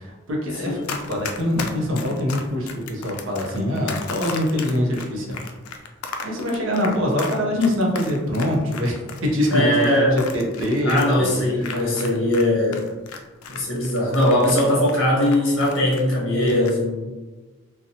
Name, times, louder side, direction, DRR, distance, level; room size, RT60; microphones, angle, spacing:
voice 1, 0.0-5.5 6.2-11.9, left 1 dB, 65° right, -1 dB, 0.6 m, -24 dB
Run, 0.8-12.4 12.7-16.1 16.4-16.7, left 5 dB, 85° left, 0.4 m, -35 dB
voice 2, 9.5-10.2 10.8-12.8 13.5-17.0, left 1 dB, 55° left, -4 dB, 0.8 m, -20 dB
2.8 x 2.1 x 2.6 m, 1.2 s
head